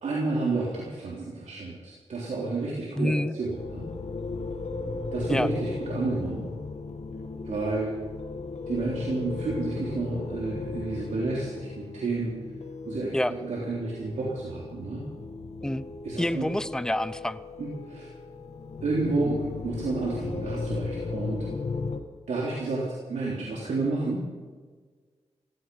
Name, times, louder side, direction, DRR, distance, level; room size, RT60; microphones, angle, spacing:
voice 1, 0.0-3.9 5.1-6.5 7.4-8.0 8.7-12.4 12.8-15.0 16.0-16.5 17.6-18.1 18.8-21.5 22.3-24.2, right 3 dB, 90° right, -4 dB, 3.4 m, -30 dB
voice 2, 3.0-3.3 5.3-5.5 13.1-13.3 15.6-15.8 16.2-17.4, left 1 dB, 5° left, 15 dB, 0.7 m, -27 dB
sound 1, 3.5-22.0, left 3 dB, 70° left, 1.7 m, -36 dB
16.0 x 15.5 x 5.6 m, 1.4 s
cardioid pair, 70°, 12 cm